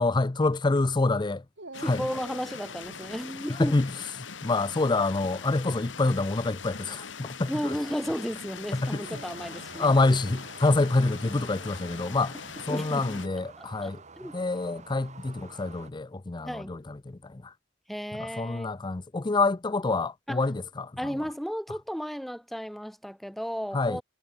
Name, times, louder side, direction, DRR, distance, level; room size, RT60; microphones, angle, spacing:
voice 1, 0.0-1.4 1.8-2.1 3.5-3.9 4.4-7.8 8.7-9.0 9.8-12.4 12.7-14.0 14.3-17.5 18.2-21.2 23.7-24.0, left 3 dB, 25° left, 0.5 m, -27 dB
Dog, 1.6-3.2 5.3-5.8 6.6-6.7 8.8-10.1 12.5-13.5, right 2 dB, 65° right, 6.2 m, -48 dB
sound 1, 1.7-13.3, left 6 dB, 70° left, 1.6 m, -42 dB
voice 2, 1.8-3.8 7.5-9.9 12.7-13.1 13.6-14.3 16.5-16.7 17.9-18.7 20.3-20.4 21.0-24.0, equal, ahead, 0.8 m, -34 dB
sound 2, 9.0-15.9, right 4 dB, 40° right, 1.9 m, -50 dB
head